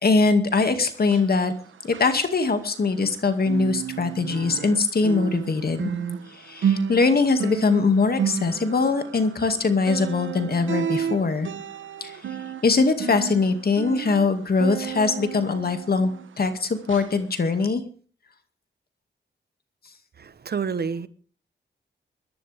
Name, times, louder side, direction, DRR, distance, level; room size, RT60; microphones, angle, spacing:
voice 1, 0.0-1.5 1.9-5.9 6.5-11.5 12.0-12.1 12.6-16.1 16.4-17.8, left 4 dB, 50° left, 2.2 m, -22 dB
sound 1, 1.0-3.1 3.4-16.5 16.9-17.1 17.6-17.7, right 7 dB, 80° right, 1.1 m, -32 dB
voice 2, 20.2-21.1, right 6 dB, 55° right, 1.0 m, -28 dB
22.0 x 12.0 x 3.5 m
cardioid pair, 80°, 20 cm